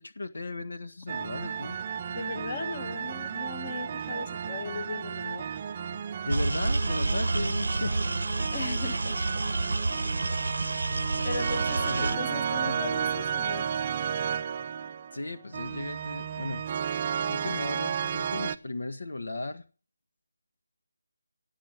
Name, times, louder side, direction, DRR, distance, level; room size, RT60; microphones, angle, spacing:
voice 1, 0.0-1.8 6.2-8.1 8.6-8.7 11.0-11.1 11.9-12.8 15.1-16.6 16.9-19.6, left 2 dB, 75° left, 8 dB, 1.6 m, -36 dB
sound 1, 1.1-18.5, right 7 dB, 25° right, 0.6 m, -33 dB
voice 2, 2.1-5.4 8.5-9.1 11.2-13.6, left 4 dB, 30° left, 9 dB, 1.4 m, -37 dB
sound 2, 6.3-12.2, right 2 dB, 75° right, 0.7 m, -29 dB
18.0 x 7.4 x 7.7 m, 0.39 s
figure-of-eight pair, 170°, 0 cm